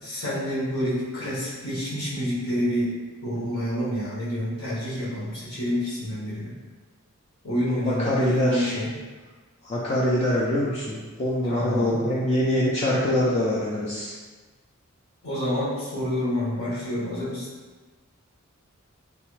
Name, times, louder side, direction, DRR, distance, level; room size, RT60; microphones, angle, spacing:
voice 1, 0.0-2.9 3.2-6.5 7.4-8.9 11.4-12.0 15.2-17.5, equal, 80° left, -9 dB, 1.1 m, -28 dB
voice 2, 7.8-8.8 9.6-14.1, left 1 dB, 30° left, -6 dB, 0.3 m, -24 dB
3.1 x 2.1 x 3.1 m, 1.3 s
head